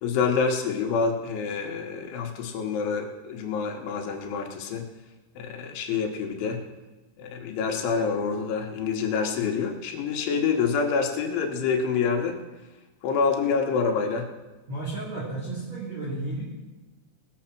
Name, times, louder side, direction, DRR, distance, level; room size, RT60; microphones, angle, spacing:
voice 1, 0.0-4.8 5.4-6.6 7.2-12.4 13.0-14.3, left 5 dB, 70° left, 2 dB, 3.3 m, -27 dB
voice 2, 14.7-16.4, right 2 dB, 40° right, -7 dB, 3.4 m, -32 dB
20.0 x 7.2 x 5.9 m, 1.2 s
omnidirectional pair, 6.0 m